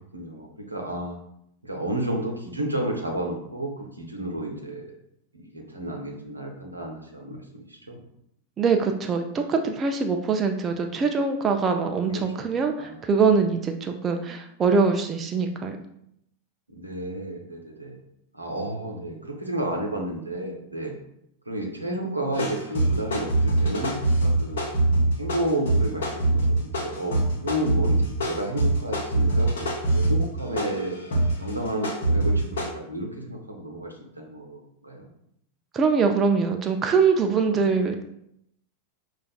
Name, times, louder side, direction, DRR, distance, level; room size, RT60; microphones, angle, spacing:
voice 1, 0.1-1.2 1.6-4.8 5.3-8.0 12.1-12.5 12.8-13.1 16.7-18.0 18.3-20.9 21.5-24.6 25.2-29.7 29.9-31.0 31.4-35.1, right 1 dB, 85° right, 1 dB, 0.7 m, -31 dB
voice 2, 8.6-15.8 35.7-38.0, right 5 dB, 25° right, 5 dB, 0.3 m, -23 dB
sound 1, 22.3-32.7, right 2 dB, 65° left, 0.8 m, -23 dB
5.5 x 2.4 x 2.3 m, 0.74 s
figure-of-eight pair, 90°, 0 cm